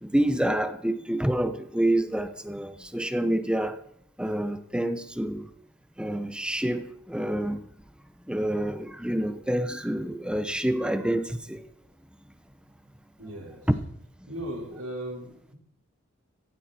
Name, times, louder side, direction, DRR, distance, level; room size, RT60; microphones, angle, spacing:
voice 1, 0.0-3.8 4.2-5.5 6.0-7.6 8.3-11.6 14.2-14.3, right 1 dB, 5° right, 9 dB, 1.0 m, -28 dB
voice 2, 13.2-13.6 14.3-15.6, right 1 dB, 80° right, -1 dB, 5.3 m, -37 dB
16.0 x 15.5 x 4.5 m, 0.68 s
head